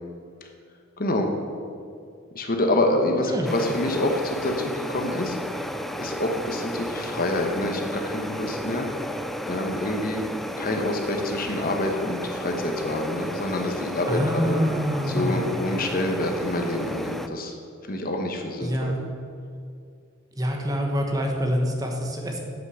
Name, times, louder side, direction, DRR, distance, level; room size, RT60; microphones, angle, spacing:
voice 1, 1.0-1.3 2.3-5.7 6.0-8.9 9.4-10.2 10.6-14.6 15.1-17.5 17.9-18.9, left 1 dB, 45° left, 3 dB, 1.1 m, -27 dB
sound 1, 3.4-17.3, equal, ahead, 0.4 m, -33 dB
voice 2, 14.1-15.6 18.6-19.0 20.4-22.4, equal, 20° right, 1 dB, 1.2 m, -26 dB
8.5 x 8.2 x 6.4 m, 2.4 s
head